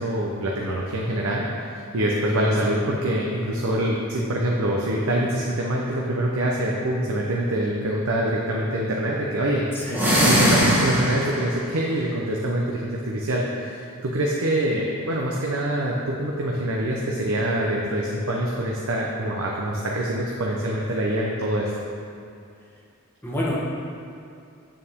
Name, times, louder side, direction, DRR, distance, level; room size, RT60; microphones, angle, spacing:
voice 1, 0.0-9.7 10.2-21.7, right 1 dB, 75° right, -2 dB, 0.8 m, -25 dB
voice 2, 9.7-10.1 23.2-23.6, equal, 10° left, -6 dB, 1.4 m, -28 dB
sound 1, 9.9-11.5, equal, 10° right, 1.6 m, -20 dB
8.9 x 7.0 x 3.6 m, 2.5 s
head